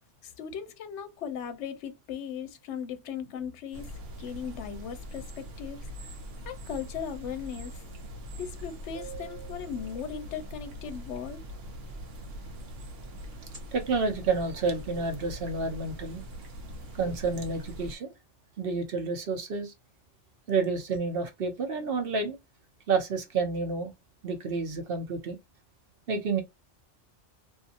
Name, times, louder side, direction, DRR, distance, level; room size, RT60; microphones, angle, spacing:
voice 1, 0.2-3.9 4.2-5.8 6.4-7.8 8.3-11.4, left 7 dB, 75° left, 0.9 m, -38 dB
sound 1, 3.7-18.0, equal, 85° right, 1.0 m, -42 dB
sound 2, 8.9-10.7 13.3-13.6, right 9 dB, 30° right, 1.3 m, -47 dB
voice 2, 13.7-16.2 17.0-18.1 18.6-19.7 20.5-22.4 22.9-23.9 24.2-25.4 26.1-26.4, right 4 dB, 55° right, 0.8 m, -29 dB
2.6 x 2.6 x 2.4 m
omnidirectional pair, 1.2 m